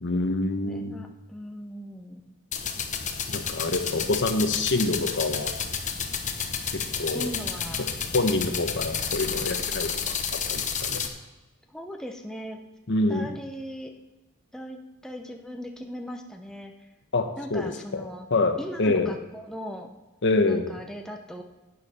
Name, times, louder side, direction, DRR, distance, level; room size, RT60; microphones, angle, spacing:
voice 1, 0.0-0.9 3.3-5.5 7.0-7.3 8.1-10.2 10.5-11.0 12.9-13.3 17.1-19.1 20.2-20.7, left 2 dB, 55° left, 6 dB, 1.1 m, -26 dB
voice 2, 0.6-2.3 3.8-4.3 7.1-7.9 11.7-12.6 13.1-13.9 14.5-16.7 17.4-18.3 18.6-19.9 20.5-21.4, equal, 5° left, 3 dB, 0.7 m, -39 dB
sound 1, 2.5-11.1, left 6 dB, 35° left, 0.9 m, -31 dB
11.5 x 8.7 x 4.3 m, 1.1 s
head